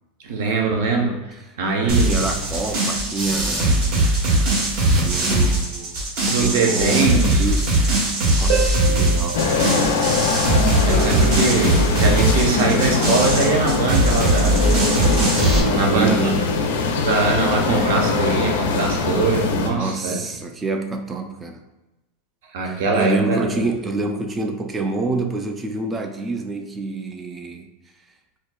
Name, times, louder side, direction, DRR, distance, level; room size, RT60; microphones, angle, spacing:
voice 1, 0.2-2.3 6.2-7.4 10.6-14.6 15.7-16.3 17.0-20.2 22.5-23.5, right 3 dB, 70° right, 1 dB, 0.8 m, -22 dB
voice 2, 1.5-4.0 5.0-6.0 6.2-7.8 8.4-9.6 11.0-11.2 15.6-16.5 19.7-21.6 22.6-27.7, right 3 dB, 15° right, 5 dB, 0.3 m, -27 dB
sound 1, 1.9-15.6, right 1 dB, 55° right, 1.2 m, -20 dB
Harp, 8.5-11.0 14.5-14.6, right 6 dB, 85° right, 1.2 m, -28 dB
sound 2, 9.3-19.7, left 4 dB, 80° left, 0.6 m, -22 dB
4.4 x 2.7 x 2.3 m, 1.0 s
supercardioid pair, 160°, 0 cm